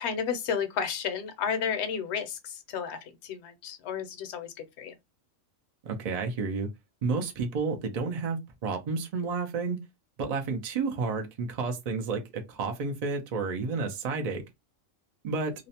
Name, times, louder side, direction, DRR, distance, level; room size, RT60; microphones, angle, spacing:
voice 1, 0.0-4.9, left 7 dB, 70° left, 0.8 m, -32 dB
voice 2, 5.8-6.7 7.0-9.8 10.2-14.4 15.2-15.5, right 4 dB, 90° right, 0.3 m, -31 dB
2.5 x 2.0 x 2.7 m
omnidirectional pair, 1.3 m